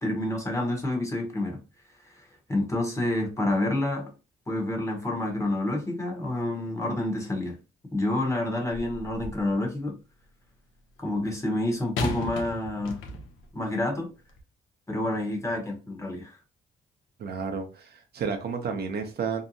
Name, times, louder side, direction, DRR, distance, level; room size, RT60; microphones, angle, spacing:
voice 1, 0.0-1.6 2.0-4.1 4.5-7.6 7.9-10.0 11.0-13.0 13.5-14.1 14.9-16.4, left 1 dB, 15° left, 0.9 m, -28 dB
sound 1, 8.7-9.5 12.0-13.5 14.3-14.4, left 2 dB, 80° left, 0.6 m, -35 dB
voice 2, 17.2-19.4, right 5 dB, 55° right, 0.6 m, -31 dB
2.7 x 2.1 x 2.6 m
cardioid pair, 90°, 20 cm